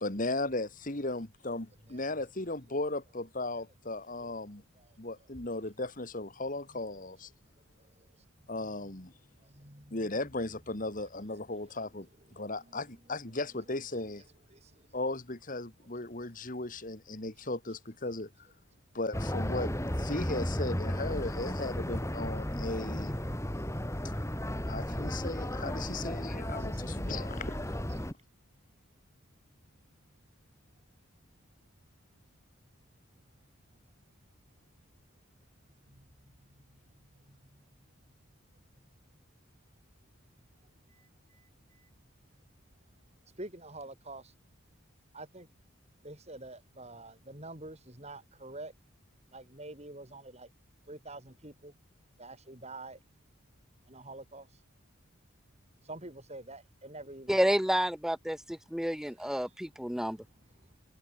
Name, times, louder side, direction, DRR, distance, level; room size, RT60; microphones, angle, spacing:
voice 1, 0.0-4.6 5.0-7.3 8.5-9.1 9.9-14.2 14.9-18.3 18.9-19.7 20.0-23.1 24.7-27.8, left 2 dB, 40° left, 2.0 m, -36 dB
voice 2, 3.9-4.4 4.7-5.0 5.3-5.4 6.6-7.0 8.0-8.1 8.6-11.6 11.9-15.0 15.8-15.9 17.4-17.8 19.0-19.1 21.1-21.7 22.1-24.3 25.9-26.0 26.6-26.8 27.9-28.0 35.8-37.6 40.9-41.9 43.4-44.3 45.1-45.5 46.0-48.7 49.3-50.5 50.9-51.7 52.2-53.0 53.9-54.6 55.8-57.7 60.2-60.8, right 2 dB, 30° right, 4.4 m, -50 dB
sound 1, 19.1-28.1, equal, 15° left, 2.9 m, -34 dB
voice 3, 57.3-60.2, equal, ahead, 0.7 m, -30 dB
head